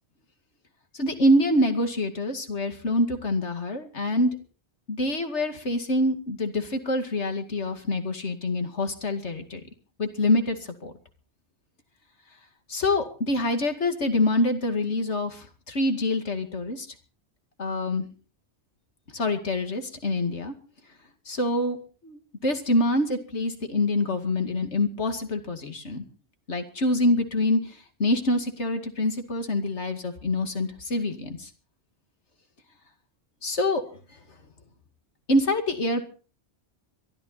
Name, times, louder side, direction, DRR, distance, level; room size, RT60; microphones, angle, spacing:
voice 1, 0.9-4.3 4.9-9.6 10.0-10.9 12.7-16.9 17.6-18.1 19.1-20.5 21.3-21.8 22.0-26.0 26.5-31.5 33.4-33.8 35.3-36.0, left 1 dB, 85° left, 6 dB, 2.6 m, -25 dB
22.5 x 14.0 x 4.1 m, 0.38 s
omnidirectional pair, 1.1 m